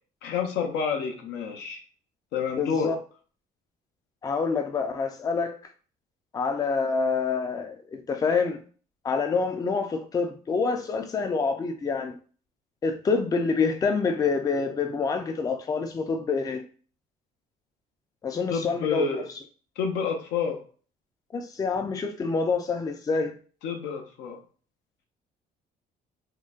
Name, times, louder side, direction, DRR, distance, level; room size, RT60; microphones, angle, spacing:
voice 1, 0.2-1.8 2.3-2.9 18.5-19.3 19.8-20.6 23.6-24.4, left 6 dB, 90° left, 0.7 m, -29 dB
voice 2, 2.6-3.0 4.2-5.5 6.3-8.6 9.0-12.2 12.8-16.6 18.2-19.2 21.3-23.3, left 4 dB, 20° left, 0.4 m, -27 dB
3.7 x 2.1 x 2.4 m
cardioid pair, 110°, 17 cm